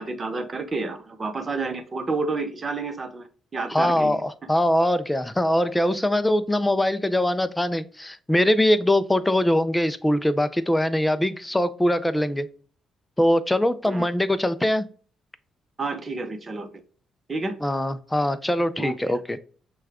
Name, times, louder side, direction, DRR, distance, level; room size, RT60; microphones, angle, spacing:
voice 1, 0.0-4.2 13.8-14.1 15.8-16.7 17.3-17.6 18.8-19.1, right 3 dB, 35° right, 7 dB, 0.8 m, -30 dB
voice 2, 3.7-12.5 13.2-14.9 17.6-19.4, left 1 dB, 10° left, 13 dB, 0.5 m, -22 dB
6.2 x 2.3 x 3.5 m, 0.43 s
cardioid pair, 90°, 0 cm